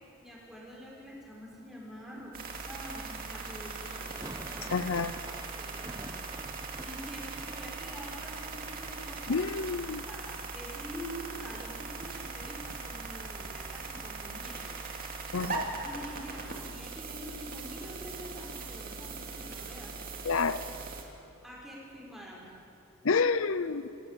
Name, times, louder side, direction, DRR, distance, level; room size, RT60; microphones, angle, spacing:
voice 1, 0.2-4.1 4.4-4.8 5.5-6.1 6.8-9.5 10.1-14.8 15.8-20.0 21.4-22.5, equal, ahead, -4 dB, 5.5 m, -46 dB
sound 1, 2.3-21.0, right 4 dB, 45° right, 2.6 m, -40 dB
sound 2, 3.9-9.9 10.1-11.0 11.3-11.4 11.6-13.8, right 1 dB, 20° right, 1.1 m, -50 dB
voice 2, 4.7-5.1 9.3-10.0 15.3-15.7 20.2-20.6 23.0-23.9, left 4 dB, 85° left, 14 dB, 0.7 m, -28 dB
28.5 x 13.0 x 8.5 m, 2.5 s
head